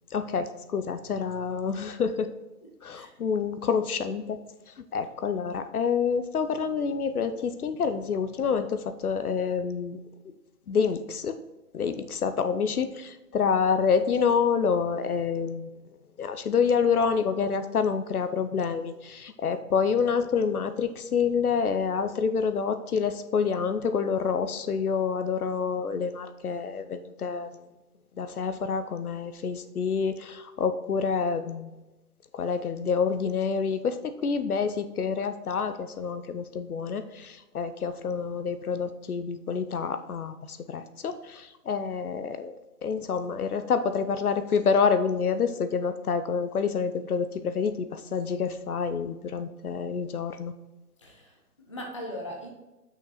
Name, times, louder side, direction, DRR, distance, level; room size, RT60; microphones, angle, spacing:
voice 1, 0.1-2.3 2.8-4.4 4.7-10.0 10.7-11.4 11.7-15.7 16.2-27.6 28.2-31.7 32.3-50.5, left 6 dB, 65° left, 10 dB, 0.8 m, -27 dB
voice 2, 2.6-3.1 51.0-52.5, equal, 20° left, 0 dB, 0.6 m, -40 dB
6.3 x 6.1 x 4.3 m, 1.1 s
hypercardioid pair, 160°, 48 cm